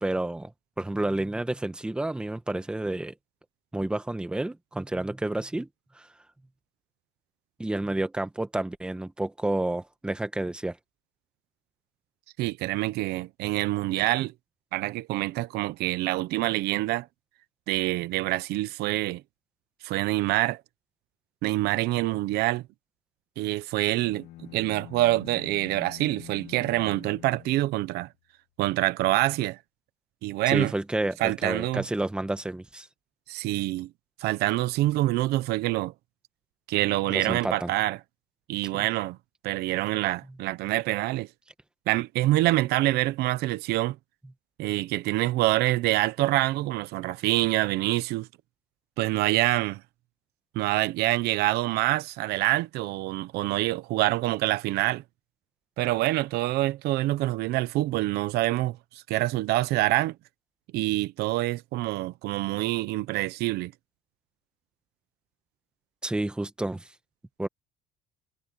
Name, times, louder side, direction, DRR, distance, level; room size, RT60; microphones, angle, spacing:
voice 1, 0.0-0.5 0.8-3.1 3.7-5.7 5.9-6.1 7.6-10.8 30.5-32.9 37.1-37.7 38.7-38.8 66.0-66.9 67.4-67.5, right 2 dB, 5° right, 1.2 m, -30 dB
voice 2, 12.4-14.3 14.7-17.1 17.7-19.2 19.8-20.6 21.4-22.7 23.4-24.3 24.5-28.1 28.6-29.6 30.2-30.7 31.2-31.8 33.3-33.9 34.2-35.9 36.7-38.0 38.5-39.2 39.4-41.3 41.9-44.0 44.6-48.3 49.0-49.8 50.5-55.0 55.8-60.1 60.7-63.7, right 17 dB, 70° right, 0.9 m, -26 dB
sound 1, 23.8-28.2, left 15 dB, 75° left, 2.2 m, -46 dB
cardioid pair, 160°, 17 cm